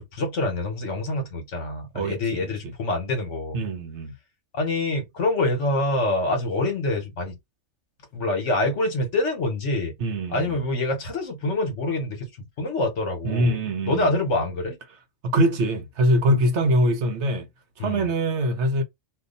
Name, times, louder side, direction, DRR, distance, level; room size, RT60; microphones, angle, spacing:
voice 1, 0.0-3.6 4.5-7.3 8.1-9.9 10.3-12.3 12.6-13.6 13.8-14.8 17.8-18.0, left 2 dB, 65° left, 1.5 m, -26 dB
voice 2, 1.9-2.7 3.5-4.1 10.0-10.6 13.2-14.1 15.2-17.5 17.8-18.8, right 1 dB, 65° right, 0.9 m, -23 dB
2.7 x 2.5 x 3.8 m
omnidirectional pair, 1.4 m